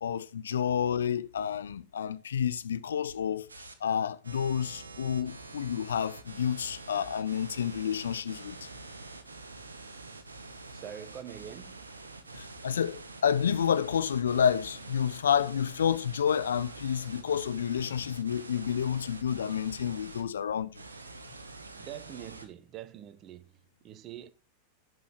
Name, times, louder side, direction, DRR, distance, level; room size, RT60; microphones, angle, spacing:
voice 1, 0.0-3.5 3.8-8.7 12.3-20.8, left 8 dB, 65° left, 0.6 m, -29 dB
sound 1, 3.5-3.7 4.2-20.2 20.7-22.4, right 3 dB, 75° right, 1.3 m, -46 dB
voice 2, 10.7-11.8 21.7-24.3, right 11 dB, 35° right, 0.8 m, -45 dB
10.5 x 6.3 x 4.5 m
figure-of-eight pair, 90°, 0 cm